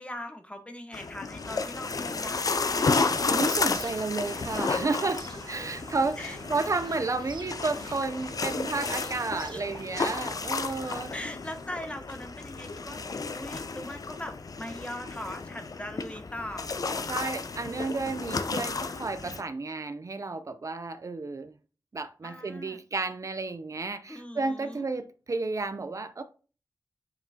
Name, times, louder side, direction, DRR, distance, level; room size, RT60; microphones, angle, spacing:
voice 1, 0.0-3.4 6.2-6.4 9.3-9.6 11.1-13.0 13.3-16.7 17.2-17.5 22.2-22.8 24.1-24.9, left 1 dB, 15° left, 0.9 m, -41 dB
sound 1, 0.9-19.4, left 4 dB, 55° left, 0.5 m, -32 dB
sound 2, 2.7-11.0, right 4 dB, 90° right, 1.0 m, -46 dB
voice 2, 3.3-11.1 17.1-21.5 21.9-26.2, right 3 dB, 45° right, 0.5 m, -32 dB
7.0 x 5.7 x 2.8 m
wide cardioid pair, 95°, 8 cm